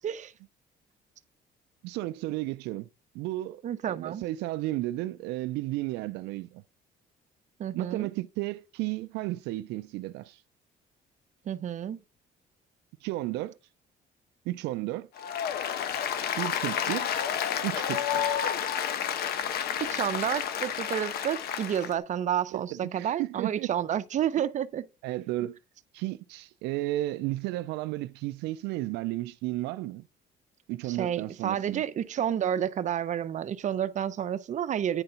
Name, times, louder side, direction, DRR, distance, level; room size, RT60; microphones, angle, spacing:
voice 1, 1.8-2.9 3.1-6.6 7.7-10.4 13.0-13.6 14.5-15.1 16.4-17.3 17.6-18.4 22.5-23.7 25.0-25.6 25.9-30.0 30.7-31.8, right 17 dB, 90° right, 0.4 m, -33 dB
voice 2, 3.6-4.2 7.6-8.1 11.5-12.0 19.8-24.8 30.9-35.0, right 10 dB, 45° right, 0.7 m, -30 dB
Applause, 15.2-21.9, left 9 dB, 70° left, 1.1 m, -30 dB
9.8 x 3.8 x 5.6 m
cardioid pair, 110°, 17 cm